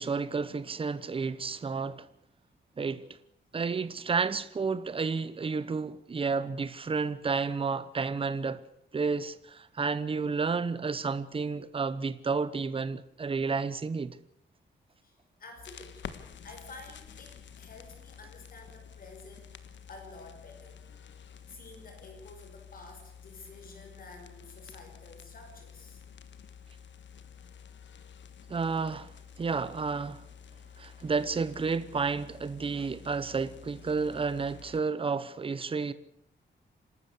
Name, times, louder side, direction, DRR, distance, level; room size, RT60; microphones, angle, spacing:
voice 1, 0.0-2.1 2.8-3.0 3.5-8.6 8.9-14.2 28.5-30.2 30.8-35.9, right 4 dB, 30° right, 0.9 m, -31 dB
voice 2, 15.0-21.1 21.5-26.0, left 3 dB, 45° left, 5.3 m, -50 dB
sound 1, 15.6-34.8, left 7 dB, 70° left, 1.5 m, -50 dB
27.0 x 12.5 x 8.3 m
wide cardioid pair, 175°, 19 cm